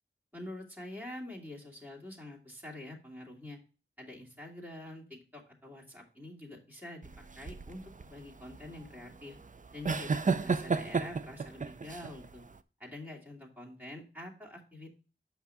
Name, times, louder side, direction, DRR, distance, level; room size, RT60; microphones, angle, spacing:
voice 1, 0.3-3.6 4.0-7.1 7.4-9.4 9.7-12.4 12.8-14.9, left 1 dB, 10° right, -3 dB, 2.6 m, -46 dB
sound 1, 7.0-12.6, right 4 dB, 40° right, 0.5 m, -33 dB
8.2 x 5.9 x 3.5 m, 0.36 s
wide cardioid pair, 65°, 21 cm